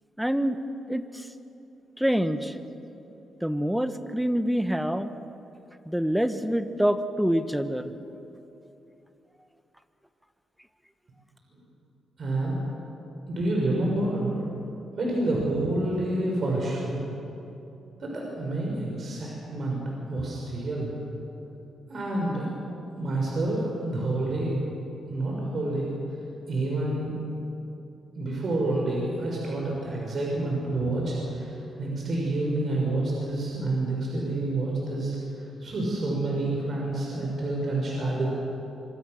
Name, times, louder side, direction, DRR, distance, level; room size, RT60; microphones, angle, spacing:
voice 1, 0.2-0.6 0.9-1.3 2.0-2.6 3.4-5.1 5.9-7.9, equal, 5° right, 10 dB, 1.2 m, -26 dB
voice 2, 12.2-12.6 13.3-14.4 14.9-17.0 18.0-19.8 20.1-20.9 21.9-22.5 22.9-24.7 25.1-25.9 26.5-27.2 28.2-38.3, right 2 dB, 50° right, -2 dB, 5.5 m, -28 dB
25.5 x 24.0 x 6.5 m, 2.9 s
cardioid pair, 105°, 0 cm